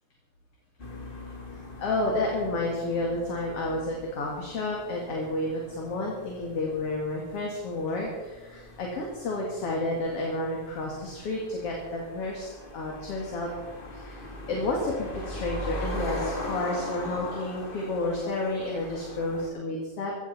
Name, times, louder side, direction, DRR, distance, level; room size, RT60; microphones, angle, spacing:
sound 1, 0.8-19.5, left 1 dB, 20° left, 1.5 m, -40 dB
voice 1, 1.8-13.5 13.9-20.1, left 2 dB, 45° left, -1 dB, 3.0 m, -31 dB
16.5 x 15.0 x 4.4 m, 1.2 s
omnidirectional pair, 3.9 m